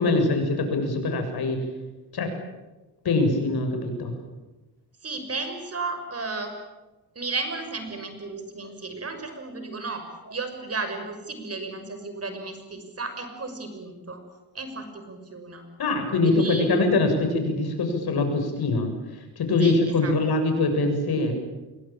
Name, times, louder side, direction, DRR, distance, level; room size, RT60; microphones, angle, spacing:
voice 1, 0.0-1.6 2.1-2.3 3.0-4.1 15.8-18.9 19.4-21.3, left 2 dB, 60° left, 5 dB, 7.2 m, -23 dB
voice 2, 5.0-6.5 7.1-14.2 14.5-15.6 16.2-16.7 19.6-20.1, right 3 dB, 35° right, 7 dB, 6.0 m, -34 dB
26.5 x 22.5 x 8.9 m, 1.1 s
cardioid pair, 100°, 42 cm